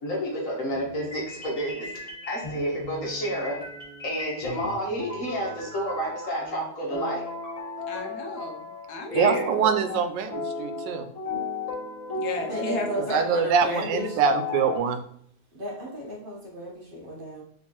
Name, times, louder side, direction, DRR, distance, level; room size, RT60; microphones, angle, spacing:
voice 1, 0.0-3.6 4.0-7.2 9.1-9.4, equal, 50° left, -2 dB, 1.4 m, -30 dB
sound 1, 0.7-8.9 9.2-14.8, left 2 dB, 25° left, 1.2 m, -36 dB
voice 2, 7.9-9.4 12.1-13.5, left 3 dB, 70° left, 3 dB, 1.2 m, -34 dB
voice 3, 9.1-11.1 13.1-15.0, right 6 dB, 90° right, 9 dB, 1.2 m, -24 dB
voice 4, 12.4-14.2 15.5-17.4, equal, 35° right, -3 dB, 1.1 m, -34 dB
4.4 x 3.5 x 2.9 m, 0.68 s
omnidirectional pair, 1.9 m